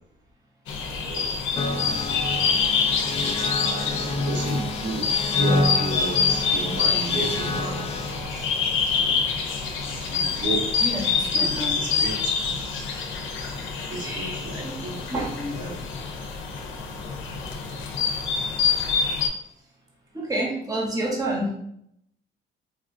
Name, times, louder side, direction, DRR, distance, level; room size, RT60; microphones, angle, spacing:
sound 1, 0.7-19.3, left 5 dB, 75° left, 0.6 m, -26 dB
voice 1, 0.9-1.3 3.7-5.1 5.4-7.8 8.9-9.5 10.1-10.7 11.3-12.2 12.4-12.6 13.9-15.0 15.5-15.8, right 3 dB, 65° right, -3 dB, 1.0 m, -33 dB
sound 2, 1.6-8.4, left 2 dB, 30° left, 0.4 m, -28 dB
voice 2, 8.3-8.9 9.8-10.4 10.8-11.9 13.3-14.8 15.1-15.6 20.1-21.5, right 1 dB, 20° right, -2 dB, 0.8 m, -31 dB
3.5 x 2.4 x 2.5 m, 0.74 s
cardioid pair, 90°, 20 cm